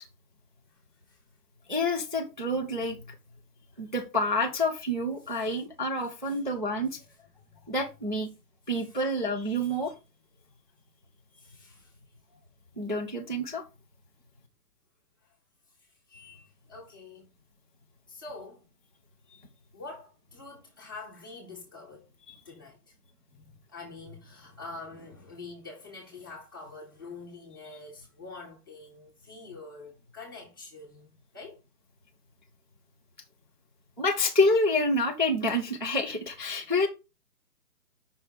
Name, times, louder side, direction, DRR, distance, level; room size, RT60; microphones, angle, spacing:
voice 1, 1.7-3.0 3.8-7.0 7.7-8.3 8.7-9.9 12.8-13.6 22.3-22.4 34.0-36.9, left 1 dB, 35° right, 0.4 m, -28 dB
voice 2, 5.3-5.6 7.4-7.7 8.8-9.0 11.4-11.9 16.1-17.3 18.1-18.6 19.7-22.8 23.3-31.6, left 3 dB, 15° left, 0.8 m, -46 dB
5.4 x 3.2 x 5.6 m
hypercardioid pair, 175°, 47 cm